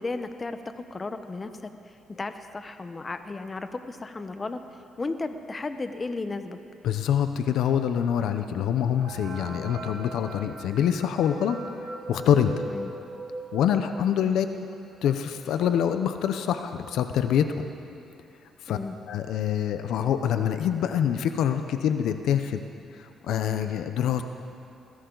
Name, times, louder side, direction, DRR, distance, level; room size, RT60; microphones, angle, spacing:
voice 1, 0.0-1.7 2.1-4.6 5.0-6.6 9.5-9.7 12.7-12.9 14.2-14.4 18.7-19.0, left 3 dB, 30° left, 9 dB, 0.9 m, -34 dB
voice 2, 6.8-12.5 13.5-14.5 15.0-17.6 18.7-18.8 19.1-22.6 22.9-24.2, left 9 dB, 80° left, 8 dB, 0.7 m, -25 dB
sound 1, 9.0-14.4 14.9-15.0 15.2-15.3 16.0-16.1 16.5-16.8, right 1 dB, 80° right, 4.3 m, -40 dB
21.0 x 16.0 x 4.0 m, 2.7 s
cardioid pair, 90°, 0 cm